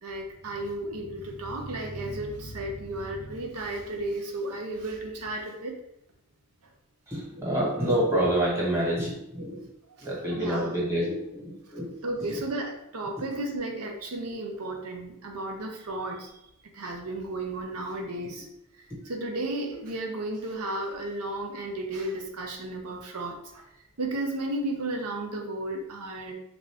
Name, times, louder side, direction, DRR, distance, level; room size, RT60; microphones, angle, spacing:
voice 1, 0.0-5.8 10.0-10.7 12.0-16.3 16.7-18.5 19.0-23.6 24.0-26.3, right 1 dB, 80° right, 2 dB, 0.7 m, -33 dB
voice 2, 7.1-9.6 10.0-11.9, right 1 dB, 10° right, -5 dB, 1.2 m, -27 dB
3.7 x 2.5 x 3.4 m, 0.79 s
head